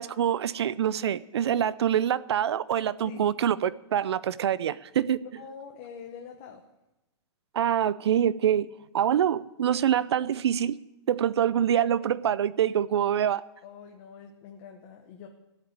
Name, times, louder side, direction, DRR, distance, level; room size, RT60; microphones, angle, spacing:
voice 1, 0.0-5.2 7.5-8.7 8.9-10.8 11.1-13.4, right 9 dB, 65° right, 0.6 m, -25 dB
voice 2, 5.4-6.6 11.5-11.9 13.6-15.3, left 6 dB, 25° left, 1.0 m, -45 dB
14.5 x 8.4 x 8.8 m
hypercardioid pair, 170°, 15 cm